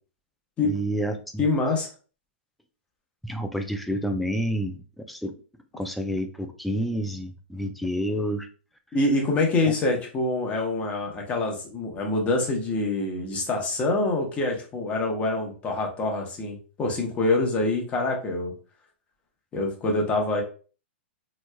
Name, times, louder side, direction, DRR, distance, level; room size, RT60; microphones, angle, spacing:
voice 1, 0.6-1.5 3.2-5.3 5.8-8.5, equal, ahead, 5 dB, 0.3 m, -29 dB
voice 2, 1.4-1.9 8.9-18.5 19.5-20.4, left 2 dB, 20° left, 1 dB, 0.8 m, -25 dB
3.3 x 3.0 x 2.2 m, 0.38 s
hypercardioid pair, 140°, 7 cm